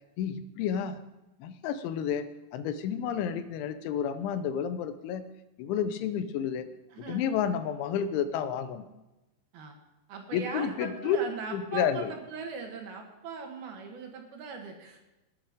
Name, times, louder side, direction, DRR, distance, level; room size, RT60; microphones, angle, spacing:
voice 1, 0.2-1.0 1.4-2.3 2.5-5.2 5.6-6.6 7.1-8.8 10.3-11.2 11.5-12.1, left 8 dB, 85° left, 11 dB, 3.3 m, -30 dB
voice 2, 6.9-7.3 9.5-9.8 10.1-15.2, right 5 dB, 65° right, 3 dB, 3.0 m, -40 dB
20.0 x 8.2 x 5.0 m, 1.0 s
omnidirectional pair, 5.3 m